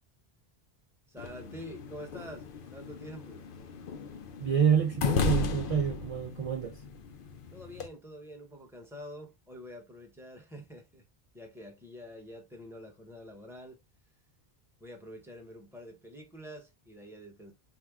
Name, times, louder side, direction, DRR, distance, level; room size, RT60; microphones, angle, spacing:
voice 1, 1.1-3.4 7.5-11.0 11.3-13.8 14.8-17.5, equal, 5° right, 0.9 m, -47 dB
sound 1, 1.2-7.9, left 4 dB, 65° left, 0.7 m, -35 dB
voice 2, 4.4-6.9, right 7 dB, 50° right, 0.4 m, -28 dB
4.6 x 2.2 x 3.5 m
omnidirectional pair, 1.0 m